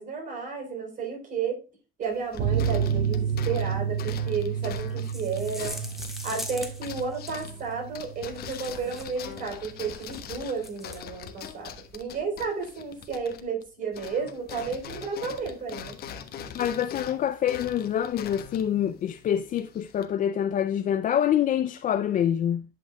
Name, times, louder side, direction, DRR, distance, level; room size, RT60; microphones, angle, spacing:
voice 1, 0.0-1.6 2.0-5.8 6.2-15.9, right 5 dB, 50° right, 4.0 m, -32 dB
sound 1, 2.0-13.7 13.9-20.1, left 8 dB, 65° left, 1.2 m, -42 dB
sound 2, 2.4-9.5 9.7-9.9 10.2-10.3, right 7 dB, 80° right, 1.0 m, -31 dB
sound 3, 4.8-7.6 8.4-9.3 9.9-10.2 10.6-11.0, equal, ahead, 1.8 m, -41 dB
voice 2, 16.5-22.6, left 10 dB, 50° left, 0.5 m, -26 dB
11.0 x 5.9 x 2.3 m
cardioid pair, 110°, 17 cm